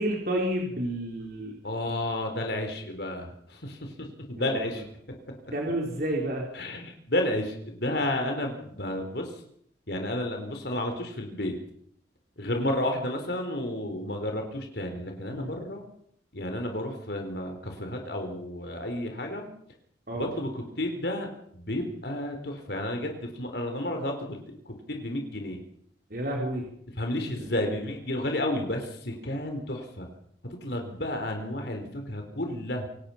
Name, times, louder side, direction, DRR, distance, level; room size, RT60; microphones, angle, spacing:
voice 1, 0.0-1.5 4.4-4.7 5.5-6.4 15.3-15.5 20.1-20.3 26.1-26.7 27.4-27.5, right 1 dB, 50° right, -1 dB, 4.2 m, -30 dB
voice 2, 1.6-3.9 4.3-4.8 6.5-9.3 9.9-11.5 12.4-15.8 16.3-19.5 20.2-21.3 21.5-24.4 24.9-25.6 26.9-30.1 30.6-32.9, left 1 dB, 60° left, 4 dB, 4.1 m, -31 dB
27.5 x 17.5 x 5.9 m, 0.67 s
head